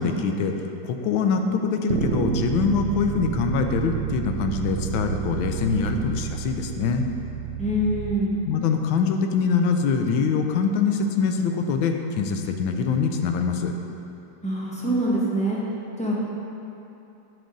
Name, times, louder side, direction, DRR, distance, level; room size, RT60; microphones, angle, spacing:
voice 1, 0.0-7.1 8.5-13.7, left 5 dB, 75° left, 5 dB, 1.3 m, -24 dB
Bass guitar, 1.9-8.1, right 11 dB, 80° right, 0.9 m, -30 dB
voice 2, 7.6-8.4 14.4-15.6 16.0-16.2, right 1 dB, 5° left, -7 dB, 0.9 m, -24 dB
9.0 x 6.2 x 3.8 m, 2.8 s
omnidirectional pair, 2.3 m